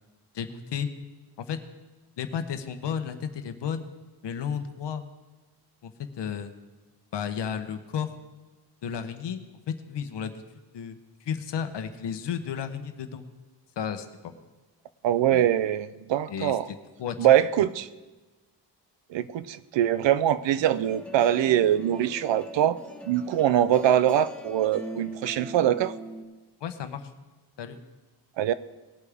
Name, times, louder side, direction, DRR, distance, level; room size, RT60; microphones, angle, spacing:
voice 1, 0.3-0.9 1.4-1.6 2.2-3.8 4.2-5.0 5.8-5.9 6.2-6.5 7.1-8.1 8.8-9.4 9.7-10.4 10.7-11.0 11.2-13.2 13.8-14.4 15.3-15.5 16.3-16.6 17.0-17.2 26.6-27.1 27.6-27.8, left 8 dB, 70° left, 9 dB, 1.0 m, -32 dB
voice 2, 15.0-16.7 17.2-17.9 19.1-22.8 23.1-25.9 28.4-28.5, right 11 dB, 80° right, 15 dB, 0.6 m, -23 dB
sound 1, 20.6-26.2, equal, 5° left, 1.4 m, -40 dB
19.0 x 8.4 x 3.5 m, 1.2 s
wide cardioid pair, 130°, 43 cm